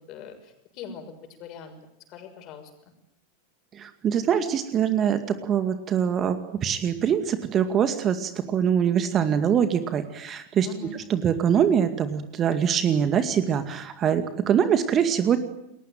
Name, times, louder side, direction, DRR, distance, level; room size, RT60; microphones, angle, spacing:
voice 1, 0.1-1.1 1.4-1.8 2.1-2.7 10.6-11.0, left 6 dB, 40° left, 7 dB, 6.3 m, -41 dB
voice 2, 3.7-10.7 11.1-15.4, right 8 dB, 30° right, 10 dB, 2.2 m, -23 dB
29.5 x 21.5 x 9.3 m, 0.83 s
figure-of-eight pair, 90°, 0 cm